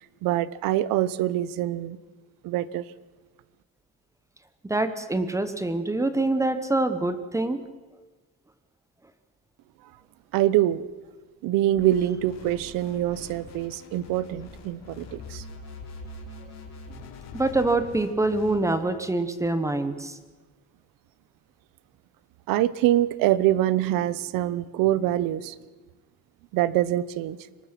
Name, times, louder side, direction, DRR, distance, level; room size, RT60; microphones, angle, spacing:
voice 1, 0.2-2.0 2.4-2.8 10.3-10.9 11.4-15.4 22.5-25.6 26.5-27.4, right 13 dB, 75° right, 18 dB, 0.9 m, -24 dB
voice 2, 4.6-7.6 17.3-20.2, right 2 dB, 10° right, 11 dB, 1.1 m, -25 dB
sound 1, 11.7-18.6, left 3 dB, 50° left, 3.6 m, -43 dB
24.0 x 19.5 x 6.0 m, 1.3 s
cardioid pair, 155°, 34 cm